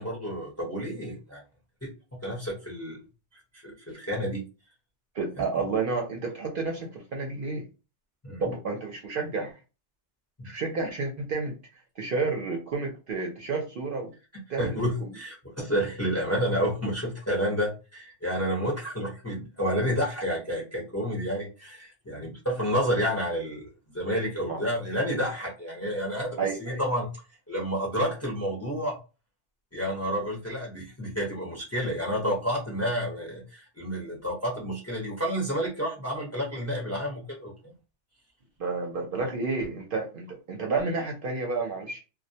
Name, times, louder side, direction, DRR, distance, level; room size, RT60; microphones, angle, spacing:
voice 1, 0.0-1.4 1.8-1.9 2.2-3.0 3.6-4.4 5.6-5.7 8.2-8.4 14.3-27.1 27.5-29.0 29.7-37.7, equal, 15° left, -3 dB, 0.6 m, -30 dB
voice 2, 5.1-7.6 8.4-9.6 10.4-11.5 12.0-14.1 14.5-15.1 24.5-24.6 26.4-26.6 38.6-42.0, right 4 dB, 60° right, 1 dB, 0.7 m, -30 dB
2.2 x 2.1 x 2.7 m, 0.30 s
omnidirectional pair, 1.2 m